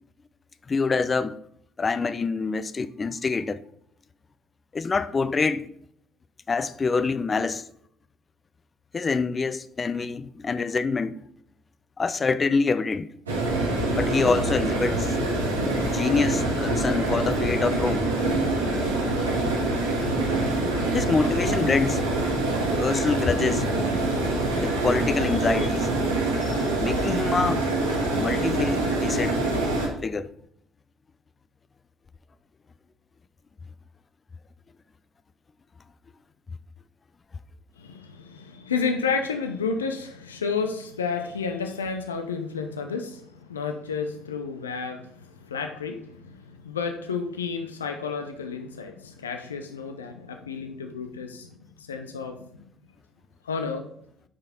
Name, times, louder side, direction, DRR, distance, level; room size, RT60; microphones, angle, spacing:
voice 1, 0.7-1.4 1.8-3.6 4.7-5.7 6.5-7.6 8.9-11.2 12.0-13.1 13.9-15.1 15.8-18.1 18.9-19.2 20.9-22.0 22.8-23.7 24.5-25.9 26.4-27.7 28.1-29.4 30.0-30.3, left 4 dB, 30° left, 0.5 m, -26 dB
sound 1, 13.3-29.9, right 2 dB, 85° right, 1.6 m, -25 dB
voice 2, 37.8-52.5 53.4-53.9, left 5 dB, 85° left, 0.6 m, -31 dB
7.3 x 4.9 x 4.3 m
figure-of-eight pair, 55°, 0 cm